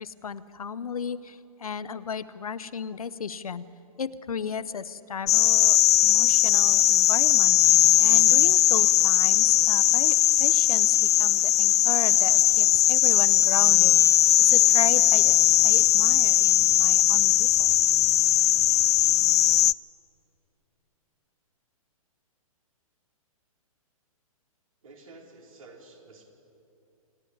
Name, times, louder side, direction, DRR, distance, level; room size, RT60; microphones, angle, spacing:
voice 1, 0.0-3.6 4.0-5.8 6.0-14.1 14.4-15.4 15.6-17.8, left 6 dB, 75° left, 15 dB, 0.9 m, -35 dB
sound 1, 5.3-19.7, left 13 dB, 50° left, 0.4 m, -19 dB
voice 2, 24.8-26.2, right 3 dB, 65° right, 0 dB, 4.5 m, -50 dB
27.0 x 10.5 x 9.7 m, 2.7 s
figure-of-eight pair, 120°, 19 cm